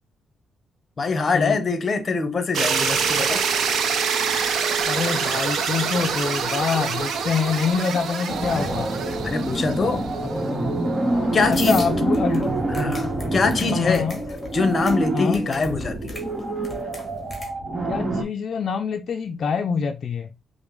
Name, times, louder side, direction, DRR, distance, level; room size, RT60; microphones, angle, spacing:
voice 1, 1.0-3.4 9.2-10.1 11.3-11.8 12.7-14.1 14.5-16.1, left 4 dB, 40° left, 0.7 m, -23 dB
sound 1, 2.5-10.6, right 6 dB, 70° right, 0.6 m, -25 dB
voice 2, 4.8-8.9 10.2-10.3 11.1-12.5 13.0-13.1 13.7-14.2 15.1-15.4 17.9-20.3, left 6 dB, 55° left, 0.3 m, -25 dB
sound 2, 8.3-18.2, right 2 dB, 40° right, 1.0 m, -26 dB
sound 3, 11.5-17.5, left 1 dB, 15° left, 1.4 m, -38 dB
5.0 x 2.1 x 3.0 m
cardioid pair, 100°, 0 cm